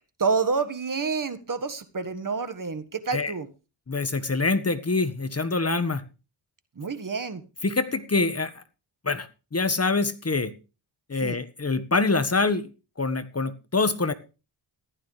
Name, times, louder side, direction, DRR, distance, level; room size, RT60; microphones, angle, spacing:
voice 1, 0.2-3.5 6.8-7.4 11.2-11.4, right 5 dB, 40° right, 11 dB, 1.6 m, -28 dB
voice 2, 3.9-6.0 7.6-8.6 9.0-10.5 11.1-12.7 13.0-14.1, left 3 dB, 30° left, 11 dB, 1.4 m, -25 dB
15.0 x 12.0 x 3.3 m, 0.31 s
wide cardioid pair, 85°, 47 cm